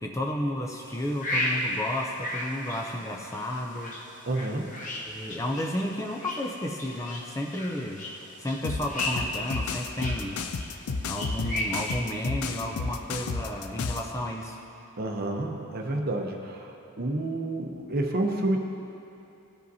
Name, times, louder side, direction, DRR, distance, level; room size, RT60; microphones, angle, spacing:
voice 1, 0.0-4.0 5.0-8.1 8.4-10.4 11.0-14.6, left 1 dB, 15° left, 1 dB, 0.4 m, -32 dB
sound 1, 0.8-12.1, left 1 dB, 35° left, 0.9 m, -35 dB
voice 2, 4.3-4.9 8.8-8.9 15.0-18.6, right 2 dB, 45° right, 2 dB, 0.7 m, -30 dB
sound 2, 8.6-14.1, left 4 dB, 75° left, 0.4 m, -32 dB
15.5 x 5.1 x 2.7 m, 2.9 s
head